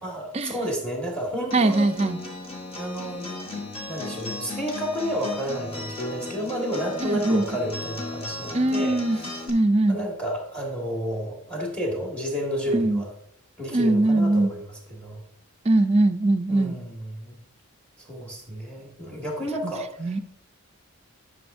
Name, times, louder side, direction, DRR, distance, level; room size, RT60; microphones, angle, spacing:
voice 1, 0.0-1.9 2.7-9.4 9.9-13.1 13.6-15.2 16.5-17.4 18.0-20.2, equal, 5° left, -1 dB, 1.7 m, -31 dB
Acoustic guitar, 1.5-9.5, left 2 dB, 25° left, 1.1 m, -36 dB
voice 2, 1.5-2.2 7.0-7.4 8.5-9.2 9.5-10.0 12.7-13.0 13.7-14.5 15.7-16.7 20.0-20.2, right 2 dB, 30° right, 7 dB, 0.3 m, -21 dB
11.0 x 6.2 x 2.6 m, 0.71 s
head